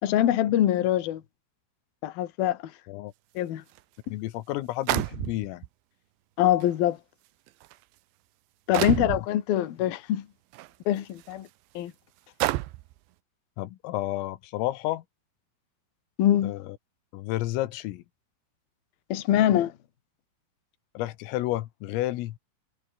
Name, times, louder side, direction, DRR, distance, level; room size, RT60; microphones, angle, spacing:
voice 1, 0.0-1.2 2.0-2.6 3.3-3.6 4.1-4.2 6.4-7.0 8.7-10.3 10.9-11.5 11.7-11.9 16.2-16.5 19.1-19.7, left 12 dB, 55° left, 3.2 m, -24 dB
sound 1, 3.8-3.9 4.9-5.7 6.6-6.7 7.5-7.7 8.7-9.2 10.5-10.7 11.3-11.4 12.4-12.9, right 18 dB, 80° right, 3.0 m, -28 dB
voice 2, 4.1-5.6 8.8-9.2 13.6-15.0 16.4-16.8 17.1-18.0 21.0-22.4, left 16 dB, 85° left, 3.9 m, -31 dB
omnidirectional pair, 5.8 m